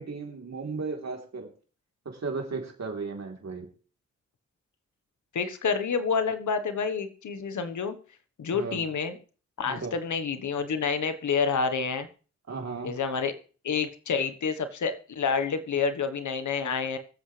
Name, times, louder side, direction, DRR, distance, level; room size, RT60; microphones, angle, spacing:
voice 1, 0.0-1.5 2.1-3.7 8.5-8.8 9.6-9.9 12.5-12.9, right 4 dB, 65° right, 2 dB, 3.5 m, -35 dB
voice 2, 5.3-8.0 8.4-9.2 9.6-12.1 12.8-13.3 13.6-17.0, left 5 dB, 85° left, 10 dB, 1.3 m, -28 dB
23.5 x 7.9 x 3.3 m, 0.40 s
cardioid pair, 55°, 29 cm